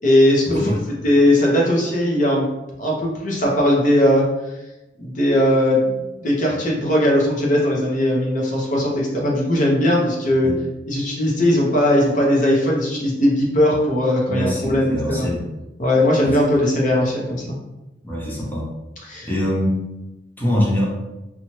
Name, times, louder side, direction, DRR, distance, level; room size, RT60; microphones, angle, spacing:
voice 1, 0.0-0.7 1.0-2.5 2.8-4.3 5.0-10.5 10.9-15.3 15.8-17.5 19.0-19.3, left 1 dB, 45° left, -3 dB, 0.8 m, -18 dB
voice 2, 14.3-15.4 16.2-16.4 18.0-18.7 19.2-19.9 20.4-20.9, left 1 dB, 10° left, -4 dB, 0.7 m, -23 dB
2.7 x 2.3 x 3.0 m, 1.0 s
head